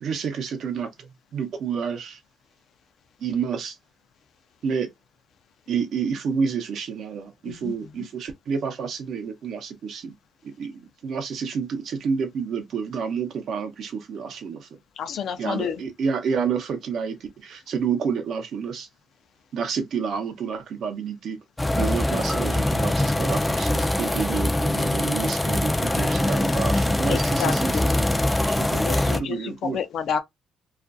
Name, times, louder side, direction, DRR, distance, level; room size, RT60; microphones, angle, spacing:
voice 1, 0.0-2.2 3.2-3.8 4.6-4.9 5.7-10.1 10.4-14.7 15.4-18.9 19.5-21.4 21.7-29.8, right 6 dB, 65° right, 0.7 m, -29 dB
voice 2, 7.5-8.1 15.0-15.8 27.1-27.9 28.8-30.2, left 7 dB, 70° left, 0.5 m, -30 dB
sound 1, 21.6-29.2, left 1 dB, 10° left, 0.3 m, -23 dB
2.4 x 2.3 x 2.5 m
cardioid pair, 90°, 0 cm